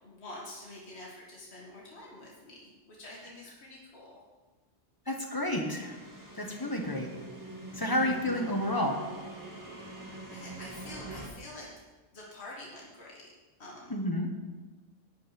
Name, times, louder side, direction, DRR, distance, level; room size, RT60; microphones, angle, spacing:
voice 1, 0.0-4.2 7.9-8.0 9.7-13.3 13.6-14.0, left 1 dB, 65° left, -4 dB, 2.3 m, -47 dB
voice 2, 5.1-6.0 6.3-7.1 7.7-9.0 13.9-14.3, left 1 dB, 20° left, 2 dB, 1.4 m, -30 dB
sound 1, 5.5-11.3, right 3 dB, 15° right, 1.8 m, -44 dB
12.5 x 5.2 x 8.5 m, 1.2 s
omnidirectional pair, 1.2 m